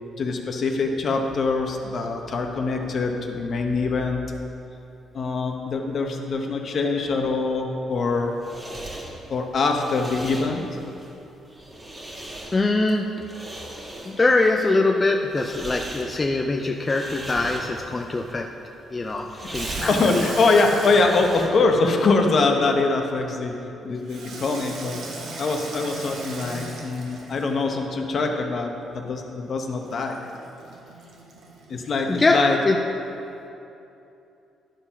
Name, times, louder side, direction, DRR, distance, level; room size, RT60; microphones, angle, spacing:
voice 1, 0.2-4.2 5.1-8.3 9.3-10.6 19.7-23.6 23.8-25.0 25.4-30.2 31.7-32.6, left 3 dB, 55° left, 3 dB, 1.0 m, -23 dB
sound 1, 8.0-21.8, right 1 dB, 20° right, 1.9 m, -40 dB
voice 2, 12.5-13.1 14.1-18.5 18.9-19.3 19.5-20.3 32.1-32.8, left 2 dB, 25° left, 2 dB, 0.5 m, -22 dB
Water tap faucet / Sink (filling or washing), 19.5-22.5 24.1-27.8 29.8-32.3, right 3 dB, 80° right, 1.3 m, -38 dB
10.5 x 4.6 x 5.8 m, 2.8 s
cardioid pair, 90°, 0 cm